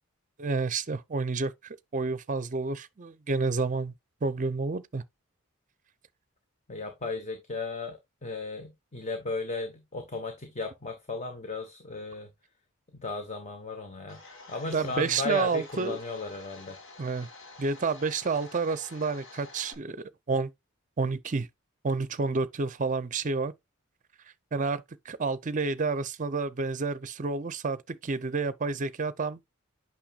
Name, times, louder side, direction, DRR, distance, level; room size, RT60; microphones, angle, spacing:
voice 1, 0.4-1.5 1.9-3.9 4.2-5.0 14.7-16.0 17.0-17.3 17.6-20.5 21.0-21.5 21.8-23.5 24.5-29.4, right 4 dB, 35° right, 0.6 m, -29 dB
voice 2, 6.7-12.3 12.9-14.2 14.5-16.8, left 3 dB, 30° left, 1.1 m, -35 dB
Domestic sounds home sounds, 14.1-19.7, left 3 dB, 60° left, 2.0 m, -49 dB
8.9 x 5.8 x 2.4 m
head